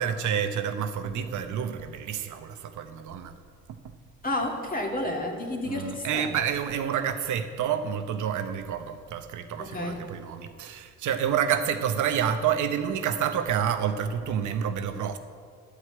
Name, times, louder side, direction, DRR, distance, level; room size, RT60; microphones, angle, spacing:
voice 1, 0.0-3.3 3.7-3.9 5.6-15.2, right 8 dB, 75° right, 8 dB, 0.9 m, -29 dB
voice 2, 4.2-6.4 9.6-10.0, left 1 dB, 30° left, 0 dB, 2.0 m, -31 dB
12.0 x 4.9 x 8.6 m, 2.1 s
cardioid pair, 90°, 30 cm